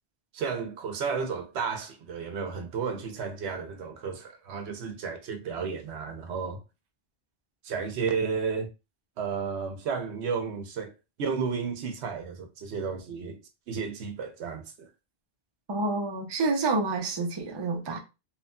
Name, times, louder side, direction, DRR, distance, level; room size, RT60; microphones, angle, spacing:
voice 1, 0.3-6.6 7.6-8.7 9.2-10.9 11.2-13.4 13.7-14.9, right 5 dB, 85° right, 0.9 m, -32 dB
voice 2, 15.7-18.0, right 3 dB, 35° right, 0.4 m, -28 dB
2.9 x 2.6 x 2.2 m
omnidirectional pair, 1.1 m